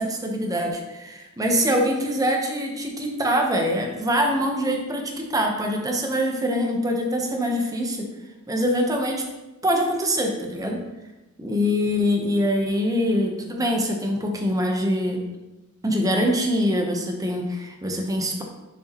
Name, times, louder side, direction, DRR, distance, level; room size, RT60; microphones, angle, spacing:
voice 1, 0.0-8.1 8.5-9.2 9.6-10.8 11.4-15.3 15.8-18.4, equal, 15° right, 2 dB, 0.9 m, -24 dB
6.9 x 6.5 x 3.0 m, 1.0 s
head